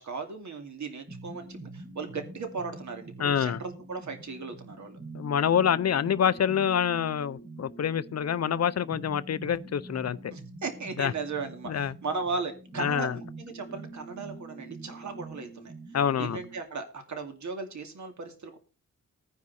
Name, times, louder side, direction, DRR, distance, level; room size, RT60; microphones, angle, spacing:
voice 1, 0.0-5.0 10.3-15.7 16.2-18.6, right 4 dB, 65° right, 2.5 m, -37 dB
sound 1, 1.1-16.6, right 3 dB, 80° right, 4.9 m, -45 dB
voice 2, 3.2-3.6 5.1-10.2 11.0-11.1 11.7-11.9 12.8-13.2 15.9-16.4, left 8 dB, 55° left, 0.5 m, -26 dB
14.5 x 9.6 x 4.2 m
wide cardioid pair, 175°, 32 cm